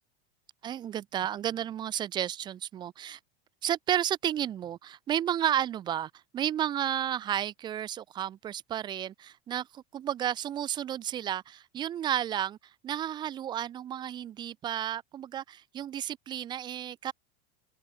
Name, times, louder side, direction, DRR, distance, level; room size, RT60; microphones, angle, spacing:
voice 1, 0.6-3.2 3.6-12.6 12.8-17.1, right 10 dB, 15° right, 0.4 m, -32 dB
open air
supercardioid pair, 170°, 30 cm